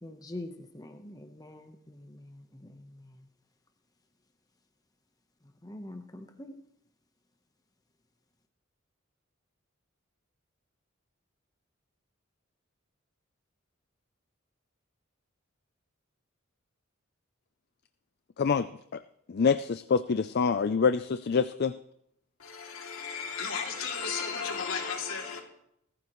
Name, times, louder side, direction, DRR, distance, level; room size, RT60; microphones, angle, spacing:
voice 1, 0.0-3.3 5.6-6.6, left 1 dB, 20° left, 1.0 m, -45 dB
voice 2, 19.3-21.7, left 5 dB, 50° left, 0.4 m, -26 dB
voice 3, 22.4-25.4, left 5 dB, 85° left, 2.7 m, -34 dB
19.5 x 14.5 x 3.1 m
head